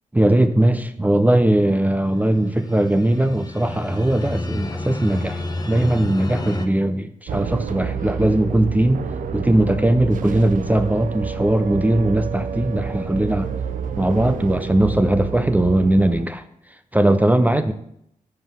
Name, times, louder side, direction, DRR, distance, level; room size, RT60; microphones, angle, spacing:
voice 1, 0.1-9.0 9.3-13.5 14.0-16.4 16.9-17.7, right 1 dB, 10° right, 10 dB, 0.5 m, -19 dB
sound 1, 2.1-6.7, left 2 dB, 30° left, 0.8 m, -30 dB
sound 2, 7.3-16.2, right 7 dB, 80° right, 0.5 m, -29 dB
5.6 x 5.4 x 6.0 m, 0.75 s
cardioid pair, 75°, 14 cm